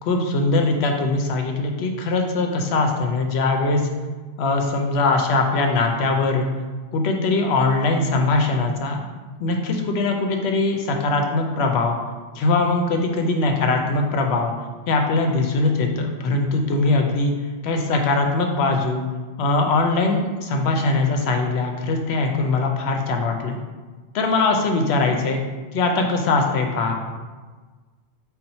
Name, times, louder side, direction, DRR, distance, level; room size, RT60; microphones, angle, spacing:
voice 1, 0.0-3.9 4.4-6.5 6.9-9.0 9.4-12.0 12.3-14.5 14.9-17.3 17.6-19.0 19.4-23.6 24.1-25.4 25.7-26.9, left 3 dB, 80° left, 3 dB, 0.8 m, -21 dB
4.1 x 2.1 x 4.1 m, 1.4 s
omnidirectional pair, 1.1 m